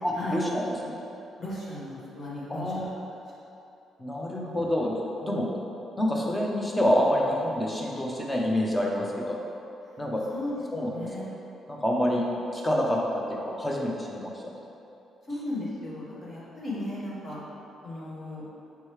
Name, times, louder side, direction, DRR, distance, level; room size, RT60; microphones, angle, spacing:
voice 1, 0.0-1.0 2.5-2.9 4.0-4.9 5.2-5.4 6.0-9.4 10.0-10.2 10.7-11.1 11.7-12.2 12.5-14.6, equal, 20° left, -2 dB, 0.7 m, -27 dB
voice 2, 1.4-2.9 4.3-4.6 10.3-11.4 15.3-17.4 17.8-18.4, left 1 dB, 50° left, -8 dB, 1.4 m, -36 dB
5.6 x 3.0 x 3.2 m, 2.8 s
cardioid pair, 90°, 0 cm